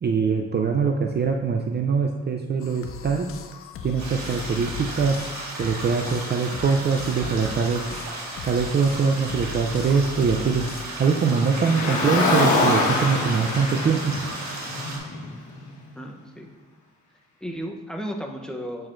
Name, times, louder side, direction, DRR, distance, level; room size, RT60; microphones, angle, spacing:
voice 1, 0.0-3.3 3.8-5.2 5.6-7.9 8.4-10.7 11.0-14.3, right 5 dB, 35° right, 4 dB, 0.5 m, -23 dB
sound 1, 2.6-10.8, left 7 dB, 45° left, 0.5 m, -38 dB
sound 2, 4.0-15.0, right 2 dB, 65° right, 1.7 m, -35 dB
Car, 11.3-15.7, left 2 dB, 70° left, 1.3 m, -25 dB
voice 2, 15.9-16.5 17.4-18.9, equal, ahead, 2 dB, 0.8 m, -34 dB
8.5 x 6.3 x 2.5 m, 1.2 s
cardioid pair, 90°, 30 cm